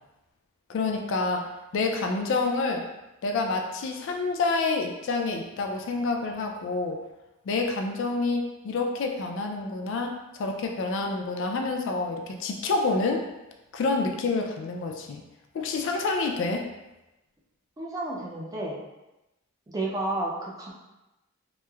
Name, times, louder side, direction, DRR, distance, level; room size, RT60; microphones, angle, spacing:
voice 1, 0.7-2.9 3.2-7.0 7.5-13.3 13.7-15.2 15.5-16.7, left 3 dB, 65° left, 3 dB, 0.3 m, -28 dB
voice 2, 17.8-18.8 19.7-20.7, right 2 dB, 20° right, -3 dB, 0.4 m, -31 dB
3.0 x 2.0 x 2.2 m, 0.98 s
head